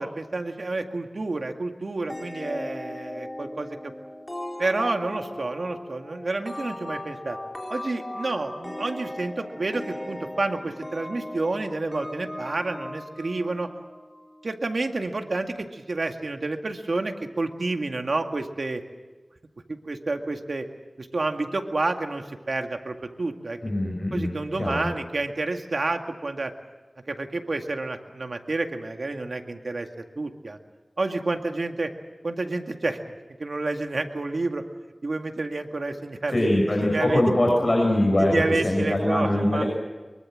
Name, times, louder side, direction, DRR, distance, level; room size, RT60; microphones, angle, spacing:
voice 1, 0.0-3.9 4.6-7.4 7.7-13.7 14.4-18.8 19.7-20.7 21.0-23.6 24.1-26.5 27.1-30.6 31.0-31.9 32.2-33.0 33.4-34.6 35.0-36.5 36.8-37.3 38.2-39.6, right 2 dB, 75° right, 5 dB, 2.1 m, -29 dB
sound 1, 2.1-14.5, left 1 dB, 25° left, 4.2 m, -38 dB
voice 2, 23.6-24.9 36.3-39.7, left 1 dB, 45° left, -1 dB, 6.6 m, -23 dB
24.5 x 23.0 x 7.7 m, 1.2 s
wide cardioid pair, 55°, 0 cm